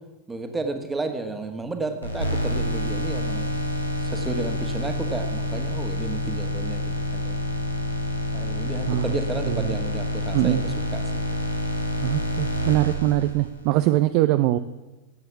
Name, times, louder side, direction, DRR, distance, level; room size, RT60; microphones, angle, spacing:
voice 1, 0.3-3.5 4.0-7.4 8.3-11.3, right 3 dB, 10° right, 6 dB, 1.7 m, -32 dB
sound 1, 2.0-13.7, left 1 dB, 85° left, 1.9 m, -28 dB
voice 2, 12.0-14.6, right 15 dB, 45° right, 11 dB, 0.5 m, -22 dB
16.5 x 7.8 x 7.2 m, 1.1 s
figure-of-eight pair, 90°, 0 cm